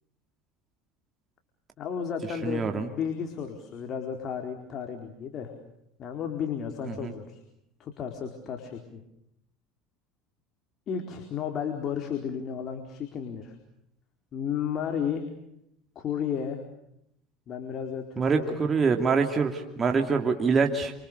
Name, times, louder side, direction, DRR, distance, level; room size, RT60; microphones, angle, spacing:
voice 1, 1.8-5.5 6.0-7.4 7.8-9.0 10.9-13.5 14.3-15.3 15.9-16.6 17.5-18.5, left 7 dB, 45° left, 4 dB, 4.4 m, -33 dB
voice 2, 2.4-2.9 6.9-7.1 18.2-20.9, right 5 dB, 25° right, 4 dB, 3.0 m, -25 dB
30.0 x 28.0 x 6.9 m, 0.78 s
supercardioid pair, 115°, 0 cm